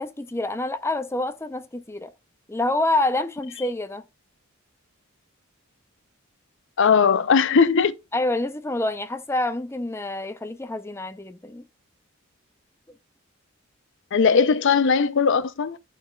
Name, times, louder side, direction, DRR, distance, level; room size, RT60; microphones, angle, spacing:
voice 1, 0.0-2.1 2.5-4.0 8.1-11.6, left 2 dB, 10° left, 0.6 m, -27 dB
voice 2, 6.8-7.9 14.1-15.8, left 5 dB, 60° left, 0.6 m, -19 dB
13.5 x 4.5 x 2.3 m
head